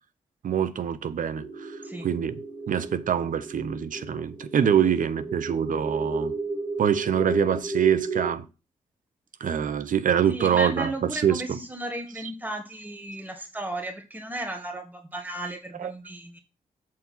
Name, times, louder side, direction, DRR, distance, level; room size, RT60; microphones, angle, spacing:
voice 1, 0.4-1.7 2.0-2.4 2.7-6.3 6.8-8.4 9.4-11.4 15.8-15.9, right 8 dB, 65° right, 0.9 m, -25 dB
sound 1, 1.4-8.3, right 3 dB, 30° right, 2.9 m, -34 dB
voice 2, 10.3-16.4, right 1 dB, 10° right, 1.9 m, -35 dB
7.8 x 4.8 x 5.6 m
cardioid pair, 55°, 15 cm